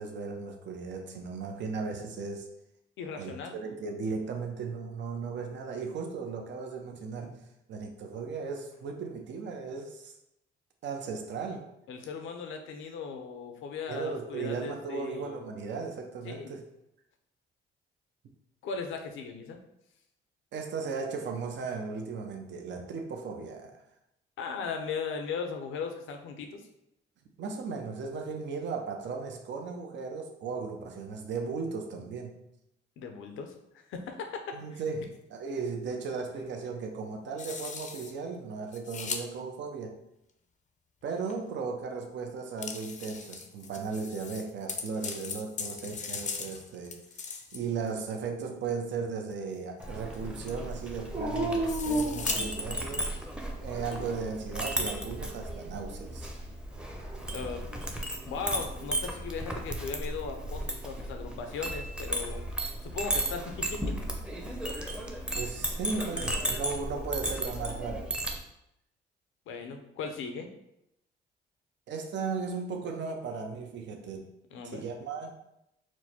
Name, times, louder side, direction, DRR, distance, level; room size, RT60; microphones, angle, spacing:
voice 1, 0.0-2.5 3.2-7.4 7.7-10.1 10.8-11.6 13.9-16.6 20.5-23.8 27.4-32.4 34.5-40.0 41.0-53.1 53.6-56.3 65.3-68.1 71.9-74.3 74.6-75.3, right 5 dB, 65° right, 3 dB, 0.7 m, -36 dB
voice 2, 3.0-3.6 11.9-15.4 16.2-16.5 18.6-19.6 24.4-26.7 33.0-34.8 57.3-57.7 58.3-62.4 62.8-64.0 69.5-70.5 74.5-74.9, left 5 dB, 80° left, 5 dB, 0.6 m, -38 dB
sound 1, 34.9-35.0 37.4-38.1 38.7-39.2 41.3-41.4 42.6-47.9 49.3-49.4 49.8-49.9 50.1-50.2 50.5-50.7 51.7-52.4, left 5 dB, 40° left, 0.5 m, -39 dB
Chink clink, 49.8-68.4, right 1 dB, 5° right, 0.7 m, -35 dB
Dog, 51.1-53.0 53.7-54.5 56.7-57.6, right 1 dB, 30° right, 1.2 m, -34 dB
4.6 x 2.2 x 4.2 m, 0.82 s
cardioid pair, 90°, 20 cm